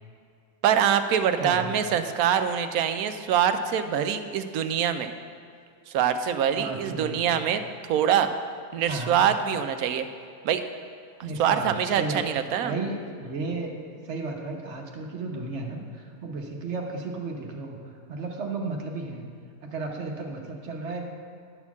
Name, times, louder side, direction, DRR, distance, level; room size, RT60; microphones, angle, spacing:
voice 1, 0.6-5.1 5.9-8.3 8.7-10.1 10.4-10.6 11.4-12.7, right 9 dB, 80° right, 9 dB, 1.0 m, -24 dB
voice 2, 1.4-2.0 6.6-7.4 8.8-9.3 11.2-12.3 12.6-17.8 18.1-19.3 19.6-21.0, right 3 dB, 50° right, 1 dB, 1.3 m, -34 dB
11.0 x 4.4 x 7.0 m, 2.3 s
omnidirectional pair, 1.6 m